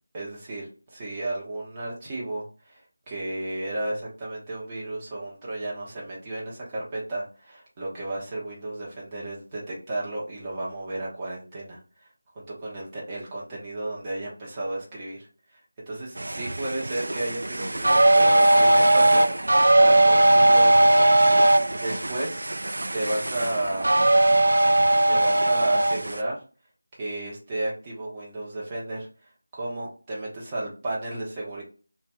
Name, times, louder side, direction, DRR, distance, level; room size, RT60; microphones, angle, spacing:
voice 1, 0.1-2.8 3.1-11.8 12.3-15.3 15.9-21.1 21.7-22.4 22.9-23.9 25.1-26.4 27.0-29.1 29.5-31.6, right 2 dB, 15° right, -5 dB, 1.0 m, -33 dB
sound 1, 16.2-26.2, right 1 dB, 65° right, 0.4 m, -19 dB
3.1 x 3.1 x 3.4 m, 0.36 s
figure-of-eight pair, 175°, 0 cm